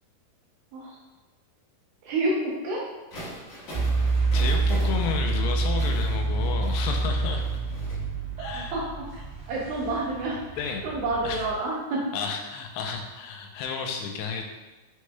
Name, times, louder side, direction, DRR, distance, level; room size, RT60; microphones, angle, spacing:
voice 1, 2.0-2.9 8.4-8.8 9.5-12.0, right 2 dB, 80° right, -4 dB, 2.2 m, -29 dB
sound 1, 3.1-7.9, equal, 60° left, 1.6 m, -42 dB
sound 2, 3.7-11.5, right 3 dB, 55° right, 2.2 m, -27 dB
voice 2, 4.3-7.5 8.4-8.9 10.6-10.9 11.2-11.4 12.1-14.5, left 6 dB, 85° left, 3 dB, 2.6 m, -32 dB
7.3 x 3.0 x 2.2 m, 1.1 s
omnidirectional pair, 4.7 m